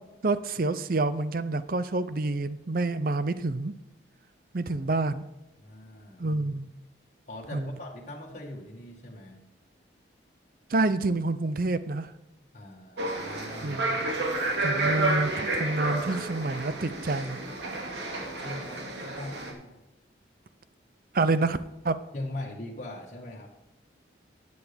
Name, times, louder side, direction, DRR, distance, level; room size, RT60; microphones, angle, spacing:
voice 1, 0.2-3.8 4.5-5.2 6.2-6.7 7.5-7.7 10.7-12.1 13.6-14.1 14.6-17.4 21.1-21.6 21.8-22.0, right 2 dB, 50° right, 13 dB, 0.6 m, -28 dB
voice 2, 5.6-6.2 7.3-9.4 12.5-13.8 17.8-19.8 22.1-23.5, left 1 dB, 40° left, -2 dB, 1.8 m, -41 dB
sound 1, 13.0-19.5, right 2 dB, 75° right, 2.3 m, -30 dB
12.5 x 9.5 x 3.6 m, 0.97 s
head